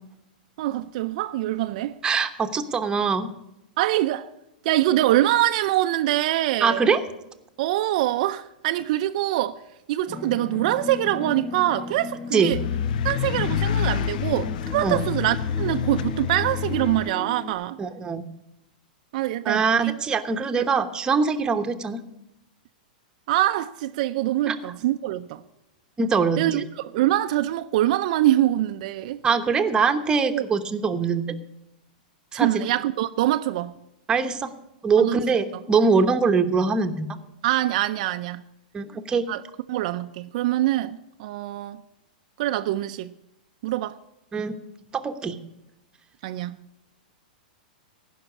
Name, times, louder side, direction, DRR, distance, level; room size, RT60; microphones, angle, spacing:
voice 1, 0.6-2.0 3.8-4.3 4.6-6.9 7.6-9.6 9.9-12.6 13.0-17.8 19.1-20.0 20.6-20.7 23.3-25.4 26.4-29.2 30.3-30.4 32.3-33.7 35.0-35.2 37.4-38.4 39.3-39.4 39.7-41.8 42.4-43.1 43.6-44.0 46.2-46.6, right 14 dB, 55° right, 0.5 m, -24 dB
voice 2, 2.0-3.3 6.6-7.0 12.3-12.6 14.8-15.1 17.8-18.2 19.4-22.0 24.5-24.7 26.0-26.6 29.2-31.3 32.3-32.7 34.1-34.5 34.8-37.1 38.7-39.3 44.3-44.6 44.9-45.4, right 5 dB, 15° right, 1.0 m, -23 dB
sound 1, 10.1-17.5, left 4 dB, 30° left, 1.8 m, -36 dB
sound 2, 12.5-17.1, left 9 dB, 65° left, 0.4 m, -27 dB
15.0 x 5.9 x 8.4 m
hypercardioid pair, 125°, 5 cm